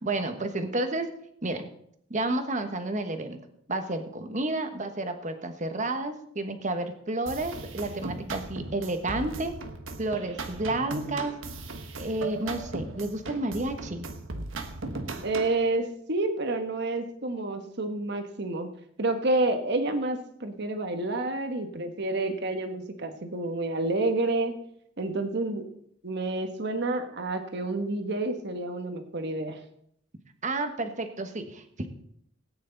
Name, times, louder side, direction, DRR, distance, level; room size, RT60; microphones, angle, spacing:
voice 1, 0.0-1.1 1.4-1.6 2.1-3.4 3.7-9.5 10.0-11.3 12.0-14.1 30.4-31.9, right 2 dB, 40° right, 7 dB, 1.3 m, -31 dB
sound 1, 7.3-15.6, right 2 dB, 85° right, 1.3 m, -38 dB
voice 2, 15.2-18.7 19.0-24.5 25.0-25.6 26.0-29.6, right 2 dB, 60° right, 7 dB, 1.3 m, -29 dB
18.0 x 9.4 x 4.0 m, 0.70 s
head